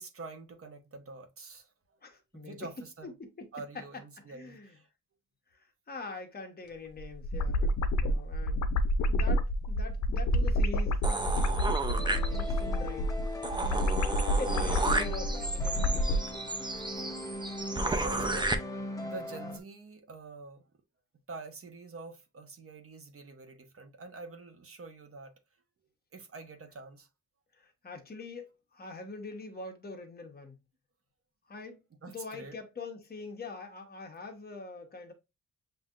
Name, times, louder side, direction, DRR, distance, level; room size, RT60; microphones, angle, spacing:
voice 1, 0.0-1.7 2.3-3.1 3.5-4.9 17.0-17.1 17.8-18.5 19.0-20.6 21.3-25.3 26.1-27.1 32.0-32.5, right 3 dB, 45° right, 1.0 m, -46 dB
voice 2, 2.0-3.5 3.7-4.8 5.5-7.7 8.0-8.7 9.1-11.0 12.3-13.1 14.4-16.3 17.8-18.4 27.5-30.6 31.5-31.8 32.1-35.1, left 3 dB, 30° left, 1.1 m, -44 dB
sound 1, 7.0-16.2, left 1 dB, 65° left, 0.6 m, -29 dB
sound 2, 11.0-12.7 13.1-13.2 13.4-18.5, right 2 dB, 15° right, 0.6 m, -33 dB
sound 3, 11.9-19.6, left 1 dB, 10° left, 0.8 m, -40 dB
7.4 x 2.8 x 2.5 m
wide cardioid pair, 130°, 30 cm